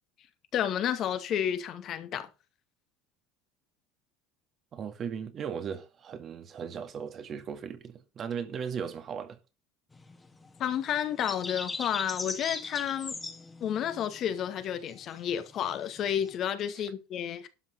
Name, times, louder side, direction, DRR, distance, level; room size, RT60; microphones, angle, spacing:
voice 1, 0.5-2.3 10.6-13.2 13.6-17.5, left 9 dB, 50° left, 2.1 m, -31 dB
voice 2, 4.7-9.4 16.7-16.9, right 7 dB, 40° right, 2.2 m, -37 dB
sound 1, 9.9-16.3, left 3 dB, 20° left, 2.1 m, -40 dB
12.0 x 5.6 x 6.5 m
supercardioid pair, 90°, 0 cm